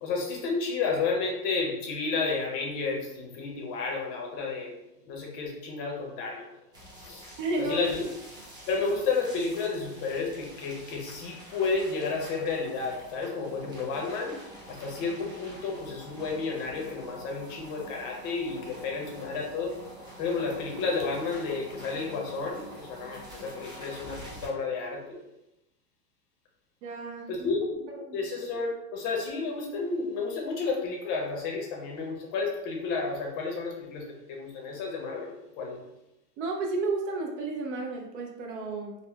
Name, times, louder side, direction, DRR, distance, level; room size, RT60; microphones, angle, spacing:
voice 1, 0.0-4.7 5.0-6.5 7.0-7.3 7.6-8.0 8.7-14.4 14.7-19.7 20.2-25.2 27.3-27.9 28.1-35.8, left 4 dB, 40° left, 0 dB, 0.7 m, -31 dB
sound 1, 6.7-24.5, equal, 10° right, 0.6 m, -47 dB
voice 2, 7.4-7.8 26.8-27.5 36.4-39.0, right 3 dB, 50° right, 1 dB, 0.5 m, -32 dB
3.5 x 2.1 x 2.3 m, 0.87 s
hypercardioid pair, 125°, 47 cm